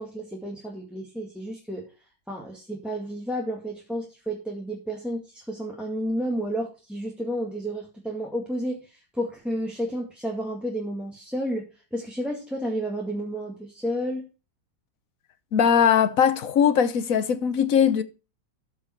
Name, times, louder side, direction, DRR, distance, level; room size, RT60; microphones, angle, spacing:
voice 1, 0.0-1.9 2.3-14.3, equal, ahead, 1.8 m, -31 dB
voice 2, 15.5-18.0, left 8 dB, 55° left, 1.2 m, -20 dB
13.5 x 5.5 x 4.5 m
omnidirectional pair, 2.0 m